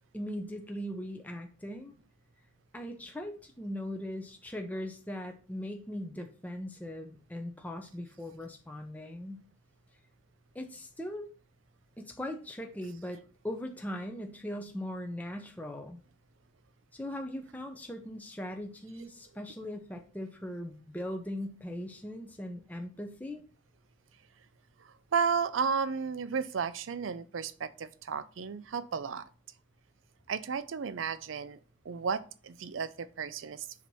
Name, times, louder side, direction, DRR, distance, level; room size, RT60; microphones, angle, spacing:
voice 1, 0.1-1.9 2.7-9.4 10.5-11.3 12.0-16.0 16.9-23.5, left 1 dB, 10° left, 0.6 m, -39 dB
voice 2, 24.8-29.2 30.3-31.6 31.8-33.7, right 6 dB, 85° right, 0.5 m, -33 dB
7.3 x 2.9 x 5.4 m
head